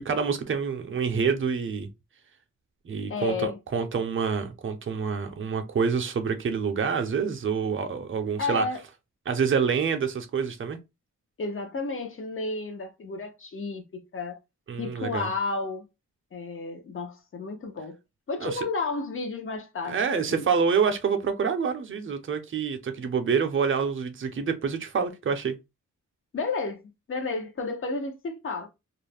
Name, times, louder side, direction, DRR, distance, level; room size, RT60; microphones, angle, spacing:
voice 1, 0.0-1.9 2.8-8.7 9.3-10.8 14.7-15.3 18.4-18.6 19.8-25.6, right 6 dB, 40° right, 0.5 m, -27 dB
voice 2, 3.1-3.6 8.4-8.8 11.4-14.4 14.8-15.9 16.3-18.0 18.3-20.5 26.3-26.8 27.1-28.7, left 3 dB, 45° left, 0.7 m, -32 dB
2.4 x 2.0 x 3.3 m
wide cardioid pair, 115°, 31 cm